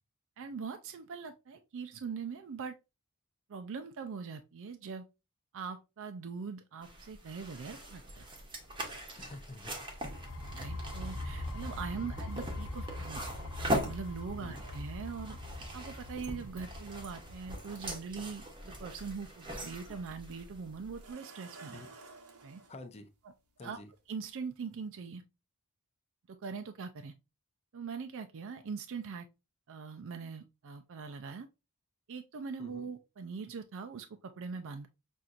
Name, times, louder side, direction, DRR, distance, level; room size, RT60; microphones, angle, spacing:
voice 1, 0.4-2.8 3.5-5.0 5.5-8.3 10.5-13.2 13.6-21.8 22.4-22.6 23.6-23.8 24.1-25.2 26.3-27.1 27.7-29.3 29.7-31.5 32.1-34.9, right 5 dB, 60° right, 0.4 m, -42 dB
sound 1, 6.8-21.1, equal, 20° right, 0.9 m, -41 dB
voice 2, 9.2-9.8 11.9-12.1 14.4-14.6 21.7-21.9 22.7-23.1 23.6-23.9 32.6-32.9, left 2 dB, 30° left, 0.5 m, -48 dB
sound 2, 10.0-17.6, left 1 dB, 65° left, 1.1 m, -42 dB
sound 3, 20.9-22.7 24.0-24.1 24.6-24.7, right 3 dB, 90° right, 0.9 m, -52 dB
5.7 x 2.6 x 2.5 m
head